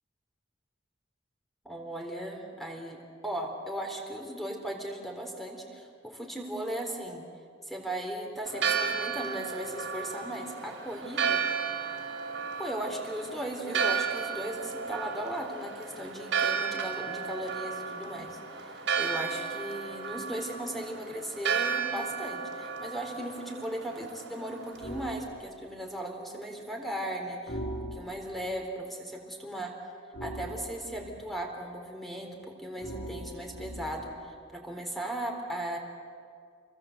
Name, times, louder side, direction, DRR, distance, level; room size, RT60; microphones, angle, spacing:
voice 1, 1.6-7.2 7.7-11.4 12.6-27.6 27.9-29.7 30.2-35.8, right 1 dB, ahead, 2 dB, 3.8 m, -37 dB
Church bell, 8.5-25.1, right 6 dB, 70° right, 3.2 m, -33 dB
sound 1, 24.8-25.2 27.5-28.4 30.1-31.2 32.8-34.2, right 1 dB, 65° left, 2.8 m, -40 dB
28.5 x 22.5 x 8.0 m, 2.3 s
head